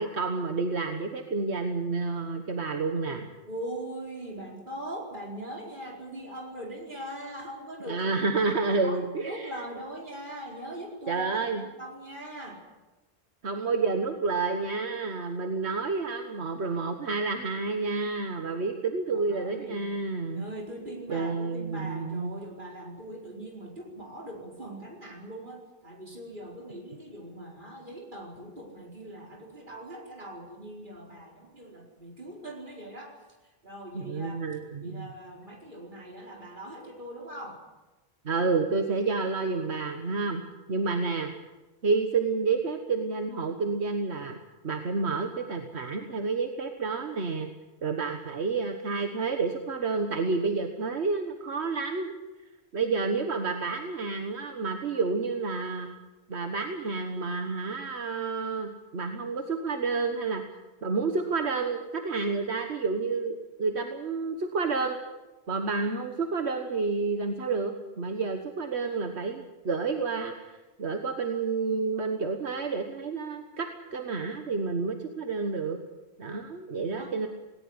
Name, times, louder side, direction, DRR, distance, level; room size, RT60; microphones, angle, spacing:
voice 1, 0.0-3.3 7.9-9.6 11.1-11.6 13.4-20.5 21.1-22.3 33.9-35.1 38.2-40.4 40.7-41.3 41.8-44.4 44.6-47.5 47.8-52.1 52.7-55.9 56.3-60.4 60.8-65.0 65.5-70.5 70.8-75.8 76.2-77.3, right 4 dB, 75° right, 5 dB, 1.7 m, -29 dB
voice 2, 3.5-8.1 8.8-12.6 19.1-19.8 20.3-33.2 33.6-34.4 34.8-37.6 76.8-77.1, right 1 dB, 50° right, 0 dB, 5.0 m, -41 dB
19.0 x 18.5 x 9.7 m, 1.1 s
omnidirectional pair, 1.1 m